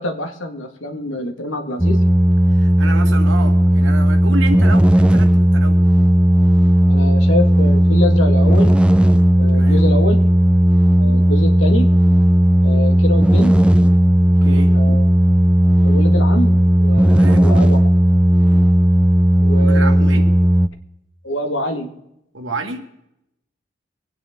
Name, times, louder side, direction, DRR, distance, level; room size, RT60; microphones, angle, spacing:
voice 1, 0.0-2.0 6.9-8.8 9.4-10.3 11.0-11.9 12.6-13.6 14.7-15.0 15.8-17.8 19.4-20.2 21.2-21.9, left 1 dB, 85° left, 1.9 m, -25 dB
sound 1, 1.8-20.7, equal, 5° right, 0.5 m, -14 dB
voice 2, 2.5-5.8 9.5-9.8 14.3-14.8 17.1-17.5 19.6-20.3 22.3-22.8, right 2 dB, 85° right, 2.0 m, -29 dB
24.0 x 9.7 x 3.7 m
head